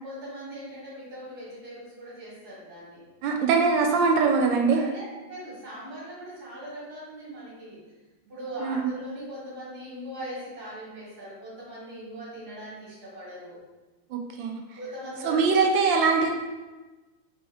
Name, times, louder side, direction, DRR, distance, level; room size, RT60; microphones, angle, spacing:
voice 1, 0.0-3.0 4.7-7.8 8.3-13.6 14.8-15.4, right 1 dB, 55° right, -8 dB, 2.0 m, -40 dB
voice 2, 3.2-4.8 8.6-8.9 14.1-14.6 15.2-16.3, right 4 dB, 80° right, 2 dB, 1.2 m, -22 dB
4.5 x 2.8 x 3.4 m, 1.2 s
omnidirectional pair, 2.1 m